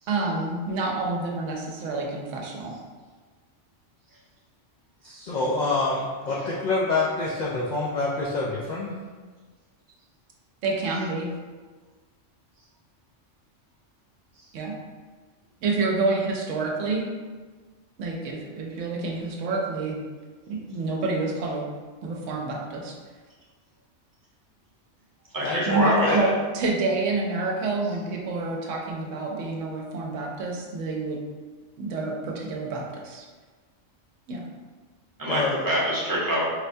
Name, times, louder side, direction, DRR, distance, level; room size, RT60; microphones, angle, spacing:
voice 1, 0.1-2.7 10.6-11.3 14.5-14.8 15.6-17.0 18.0-20.0 20.5-21.6 22.0-22.9 25.7-25.9 26.1-31.2 31.8-33.2 34.3-34.4, right 3 dB, 80° right, 0 dB, 1.0 m, -28 dB
voice 2, 5.0-9.0 25.4-26.3 35.3-35.6, left 3 dB, 65° left, -5 dB, 0.4 m, -27 dB
voice 3, 25.3-26.2 35.2-36.4, right 1 dB, 20° right, -7 dB, 0.7 m, -25 dB
4.3 x 2.2 x 2.6 m, 1.4 s
omnidirectional pair, 1.3 m